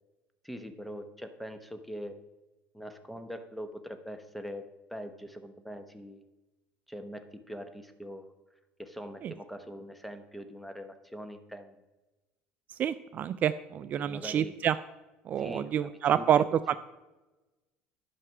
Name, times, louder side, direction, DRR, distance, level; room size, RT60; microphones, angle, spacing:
voice 1, 0.4-2.2 2.7-4.6 4.9-6.2 6.9-8.3 8.8-11.7 14.0-14.6 15.4-16.8, equal, ahead, 8 dB, 1.0 m, -43 dB
voice 2, 12.7-14.7 15.3-16.7, right 9 dB, 40° right, 13 dB, 0.3 m, -28 dB
11.0 x 5.9 x 6.0 m, 1.1 s
supercardioid pair, 105°, 4 cm